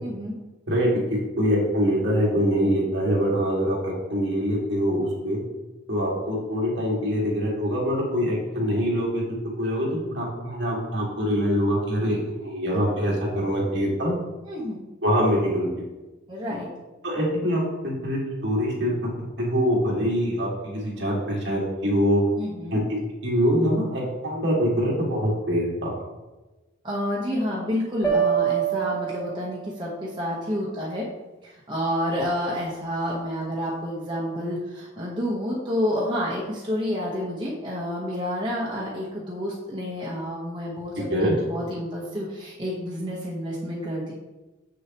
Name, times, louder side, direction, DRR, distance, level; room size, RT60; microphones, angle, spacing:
voice 1, 0.0-0.3 14.4-14.9 16.3-16.7 22.4-22.8 26.8-31.0 31.4-44.1, equal, 20° right, -5 dB, 1.0 m, -29 dB
voice 2, 0.7-1.0 1.4-5.4 5.9-9.2 9.6-14.1 15.0-15.7 17.0-18.9 19.4-22.2 22.7-23.0 23.2-26.0 41.1-41.3, equal, 60° right, -4 dB, 2.0 m, -24 dB
sound 1, 28.0-29.9, right 8 dB, 15° left, 2.0 m, -25 dB
7.1 x 6.5 x 3.0 m, 1.1 s
head